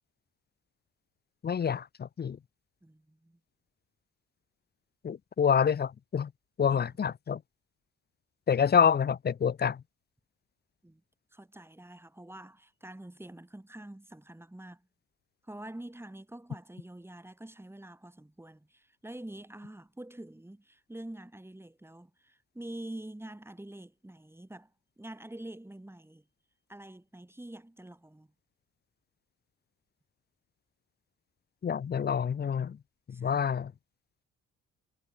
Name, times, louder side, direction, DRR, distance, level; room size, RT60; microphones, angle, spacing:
voice 1, 1.4-2.4 5.0-6.3 6.6-7.4 8.5-9.8 31.6-32.8 33.1-33.7, left 7 dB, 35° left, 0.7 m, -27 dB
voice 2, 2.8-3.4 6.7-6.8 10.8-11.0 11.3-14.9 15.4-24.7 25.0-26.2 26.7-28.3 33.1-33.5, right 1 dB, 10° right, 5.4 m, -46 dB
cardioid pair, 90°, 30 cm